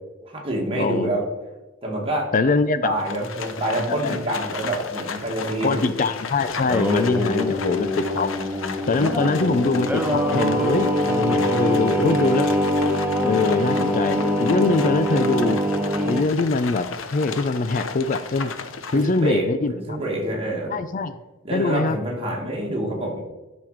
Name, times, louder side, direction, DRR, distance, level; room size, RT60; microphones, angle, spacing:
voice 1, 0.2-1.2 1.8-5.9 7.3-7.7 18.9-20.7 21.4-23.2, right 1 dB, 30° right, -1 dB, 2.2 m, -27 dB
voice 2, 0.8-1.1 2.3-2.9 3.9-4.2 5.6-8.3 8.9-12.5 13.2-15.6 16.0-18.5 18.9-20.0 20.7-21.1 21.5-22.0, left 3 dB, 40° left, 12 dB, 0.4 m, -23 dB
Livestock farm animals working animals, 3.0-19.4, left 5 dB, 85° left, 0.8 m, -34 dB
Singing, 6.5-16.3, equal, 10° right, 1.0 m, -23 dB
12.0 x 6.2 x 5.0 m, 1.1 s
head